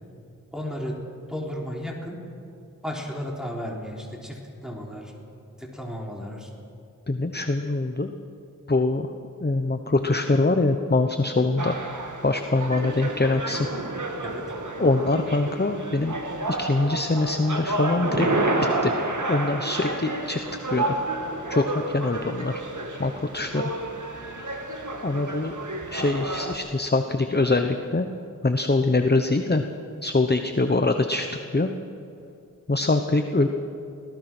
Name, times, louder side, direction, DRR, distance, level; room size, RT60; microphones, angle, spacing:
voice 1, 0.5-1.0 1.3-2.2 2.8-5.1 5.6-6.5 14.2-14.6, equal, ahead, -2 dB, 3.5 m, -34 dB
voice 2, 7.1-8.1 8.7-9.1 9.4-11.8 12.2-13.7 14.8-16.2 16.5-18.3 18.8-18.9 19.3-20.4 20.7-20.9 21.5-22.6 23.0-23.7 25.0-25.5 25.9-28.1 28.4-29.6 30.0-31.3 31.5-31.7 32.7-33.5, left 2 dB, 30° left, 6 dB, 1.0 m, -23 dB
sound 1, 11.6-26.6, right 2 dB, 60° right, 1.9 m, -30 dB
24.5 x 17.5 x 6.1 m, 2.6 s
wide cardioid pair, 50°, 33 cm